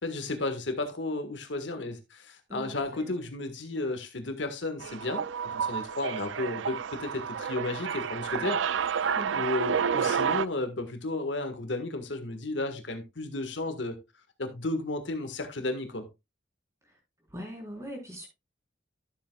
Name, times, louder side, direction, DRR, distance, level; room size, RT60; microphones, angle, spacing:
voice 1, 0.0-14.0 14.4-16.1, left 2 dB, 70° left, 1.6 m, -33 dB
voice 2, 2.5-3.1 8.4-8.5 9.2-9.4 17.3-18.3, equal, 15° right, 3.9 m, -41 dB
sound 1, 4.8-10.5, right 7 dB, 80° right, 0.4 m, -30 dB
13.0 x 7.7 x 2.3 m
head